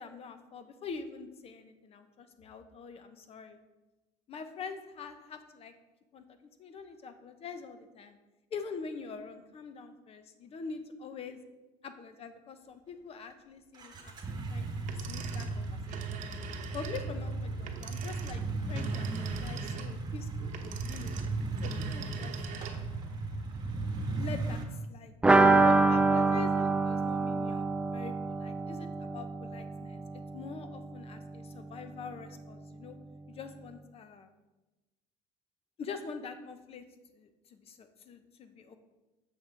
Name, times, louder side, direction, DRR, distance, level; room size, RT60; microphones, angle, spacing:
voice 1, 0.0-3.6 4.3-5.7 6.1-6.2 6.6-8.2 8.5-11.4 11.8-16.2 16.7-21.2 21.6-22.8 24.2-24.6 24.9-25.1 25.6-27.6 27.9-33.0 33.3-34.3 35.8-36.8 37.1-38.8, left 5 dB, 40° left, 9 dB, 0.8 m, -44 dB
sound 1, 13.7-24.7, right 3 dB, 25° right, 1.2 m, -36 dB
sound 2, 14.8-23.0, right 8 dB, 55° right, 0.9 m, -45 dB
sound 3, 25.2-30.8 31.1-31.2 31.5-31.6, right 3 dB, 5° right, 0.3 m, -26 dB
7.8 x 6.3 x 3.9 m, 1.1 s
cardioid pair, 125°, 15 cm